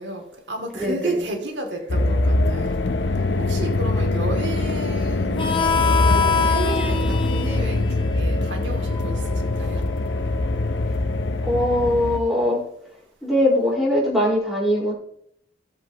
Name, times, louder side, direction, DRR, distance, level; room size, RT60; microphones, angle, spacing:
voice 1, 0.0-2.8 3.1-5.7 6.0-9.8, right 2 dB, 90° right, 2.7 m, -32 dB
voice 2, 0.8-1.2 11.5-12.6 13.2-14.9, left 1 dB, ahead, 4.8 m, -21 dB
sound 1, 1.9-12.2, left 2 dB, 85° left, 0.8 m, -23 dB
Harmonica, 5.4-10.6, left 5 dB, 25° left, 0.9 m, -26 dB
18.0 x 7.8 x 3.0 m
head